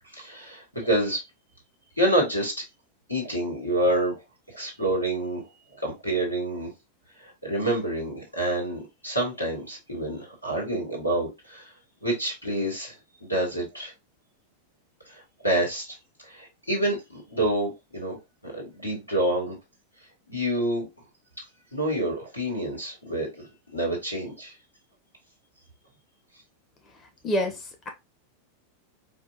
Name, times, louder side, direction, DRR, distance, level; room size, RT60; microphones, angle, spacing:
voice 1, 0.1-1.2 2.0-2.5 3.1-4.2 4.5-5.4 5.7-6.7 7.2-11.7 12.0-12.9 13.2-13.9 15.1-15.9 16.2-18.2 18.4-19.6 20.3-20.8 21.7-23.5 23.7-24.5, right 1 dB, 90° left, 1.8 m, -27 dB
voice 2, 27.2-27.9, equal, 25° left, 0.8 m, -27 dB
5.0 x 2.4 x 2.5 m
figure-of-eight pair, 90°, 0 cm